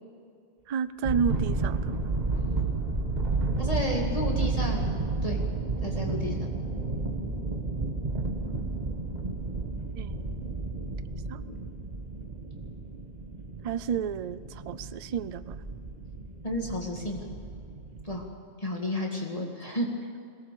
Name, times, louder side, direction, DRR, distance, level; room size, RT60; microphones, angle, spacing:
voice 1, 0.7-2.0 10.0-10.5 11.3-11.4 13.6-15.6, right 7 dB, 65° right, 14 dB, 0.3 m, -31 dB
sound 1, 1.0-18.2, right 3 dB, 30° right, 1.6 m, -32 dB
voice 2, 3.6-4.9 5.2-5.4 5.8-6.4 16.4-17.2 18.0-18.3 18.6-19.9, left 1 dB, 25° left, -1 dB, 2.3 m, -31 dB
22.0 x 18.0 x 6.9 m, 2.4 s
omnidirectional pair, 1.4 m